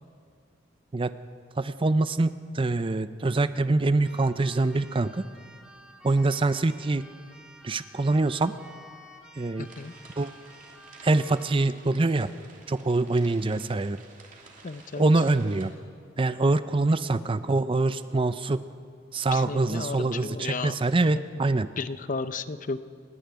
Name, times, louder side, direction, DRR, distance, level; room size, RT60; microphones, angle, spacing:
voice 1, 1.6-5.2 6.0-7.1 7.6-8.5 9.3-9.7 10.2-10.3 11.0-12.3 12.7-14.0 15.0-15.7 16.2-18.6 19.1-21.7, right 2 dB, 25° right, 13 dB, 0.5 m, -24 dB
Keyboard (musical), 4.0-11.8, left 1 dB, 5° right, 1.4 m, -51 dB
voice 2, 9.6-9.9 14.6-15.1 19.3-20.8 21.1-21.3 21.8-22.8, left 4 dB, 40° left, 12 dB, 0.7 m, -33 dB
sound 1, 9.6-15.7, right 4 dB, 40° right, 2.9 m, -52 dB
30.0 x 10.5 x 9.5 m, 2.2 s
head